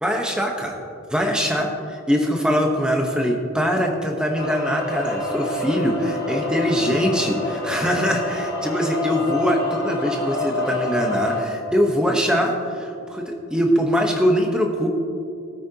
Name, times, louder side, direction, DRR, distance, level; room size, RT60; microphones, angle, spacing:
voice 1, 0.0-0.7 1.1-14.9, equal, 5° right, 1 dB, 1.1 m, -22 dB
sound 1, 4.4-11.4, left 2 dB, 45° left, 1.9 m, -27 dB
20.0 x 8.5 x 2.9 m, 2.6 s
head